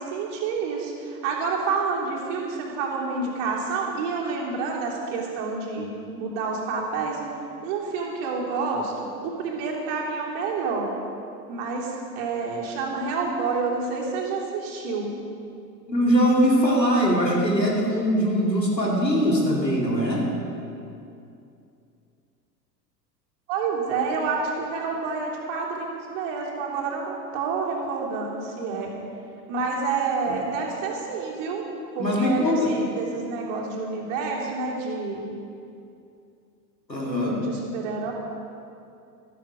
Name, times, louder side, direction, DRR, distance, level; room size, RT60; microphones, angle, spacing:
voice 1, 0.0-7.2 7.6-8.9 9.2-10.9 11.5-15.1 23.5-28.9 29.5-31.6 31.9-35.2 37.1-38.1, right 4 dB, 50° right, -2 dB, 3.2 m, -28 dB
voice 2, 15.9-20.3 32.0-32.7 36.9-37.3, equal, 90° left, -3 dB, 2.7 m, -21 dB
13.5 x 13.0 x 5.1 m, 2.6 s
figure-of-eight pair, 85°, 49 cm